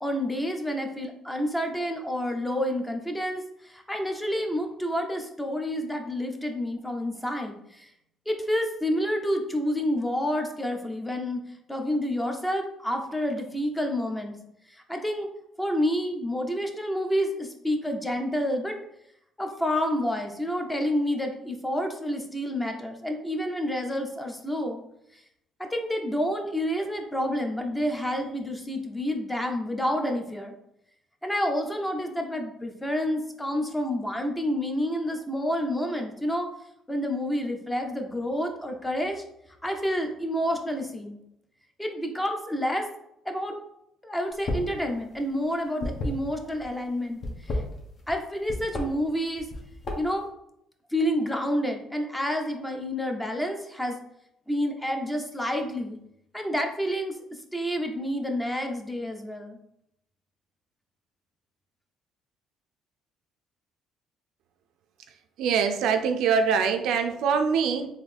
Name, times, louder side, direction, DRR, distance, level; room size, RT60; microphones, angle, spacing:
voice 1, 0.0-7.9 8.3-11.4 11.7-14.4 14.7-15.3 15.6-18.8 19.4-24.8 25.1-25.2 25.6-30.5 31.2-36.5 36.9-39.2 39.6-41.2 41.8-42.9 43.3-43.6 44.0-47.6 48.1-49.5 49.9-50.3 50.9-54.0 54.5-56.0 56.3-59.6, equal, 10° left, 3 dB, 0.7 m, -29 dB
sound 1, 44.3-44.8 45.0-46.6 47.1-48.2 48.5-48.9 49.4-50.2, left 2 dB, 45° left, 1.0 m, -31 dB
voice 2, 65.4-67.9, right 6 dB, 75° right, 6 dB, 0.4 m, -23 dB
4.0 x 2.6 x 3.3 m, 0.78 s
cardioid pair, 90°, 0 cm